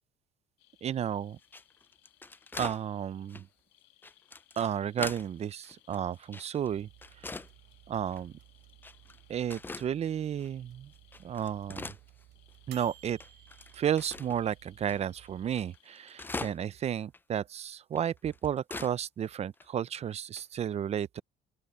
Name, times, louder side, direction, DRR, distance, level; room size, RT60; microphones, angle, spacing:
sound 1, 0.6-16.2, left 15 dB, 85° left, 2.7 m, -66 dB
voice 1, 0.8-1.4 2.5-3.5 4.6-6.9 7.3-7.4 7.9-8.3 9.3-10.9 11.2-12.0 12.7-13.2 13.7-21.2, right 9 dB, 40° right, 0.5 m, -32 dB
sound 2, 1.4-2.8 3.3-3.5 4.0-5.3 5.6-6.7 7.0-7.5 8.1-8.2 8.8-9.2 9.5-9.9 10.4-10.5 10.9-12.5 12.8-12.9 13.2-14.4 14.9-15.0 15.3-15.4 15.5-16.8 17.1-17.2 17.9-18.9 19.2-19.3 19.6-19.7 20.4-20.6, left 3 dB, 10° left, 0.4 m, -42 dB
sound 3, 6.6-15.6, right 15 dB, 85° right, 6.9 m, -57 dB
open air
cardioid pair, 110°, 17 cm